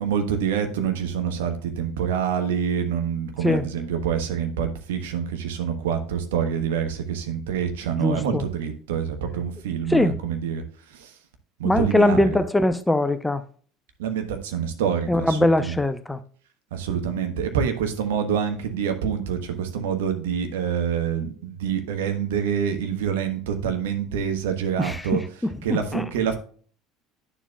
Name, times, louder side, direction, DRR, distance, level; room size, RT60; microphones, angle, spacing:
voice 1, 0.0-10.6 10.9-11.1 11.6-12.4 14.0-15.8 16.7-25.2 25.6-26.3, right 7 dB, 70° right, 1.2 m, -26 dB
voice 2, 8.0-8.4 9.9-10.2 11.6-13.4 15.1-16.2 24.8-26.0, left 1 dB, 10° left, 0.6 m, -22 dB
9.9 x 7.1 x 2.3 m
figure-of-eight pair, 65°, 0 cm